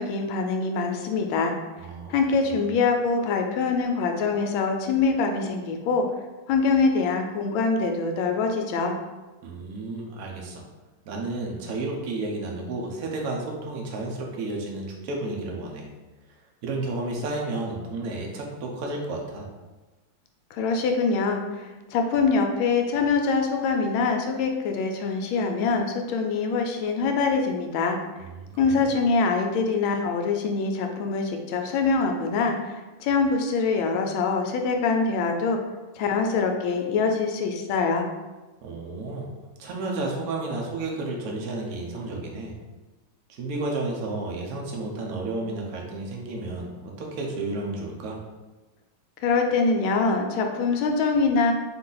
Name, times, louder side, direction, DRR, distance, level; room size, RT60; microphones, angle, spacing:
voice 1, 0.0-1.5 2.1-6.1 6.5-8.9 20.5-28.0 28.6-35.6 35.9-38.1 49.2-51.5, left 4 dB, 80° left, 4 dB, 1.3 m, -24 dB
voice 2, 1.8-2.1 2.5-2.6 9.4-10.7 11.1-15.9 16.6-19.5 28.2-28.8 38.6-39.3 39.6-42.5 43.3-48.2, right 2 dB, 60° right, 0 dB, 0.9 m, -32 dB
4.0 x 2.7 x 3.8 m, 1.2 s
omnidirectional pair, 2.3 m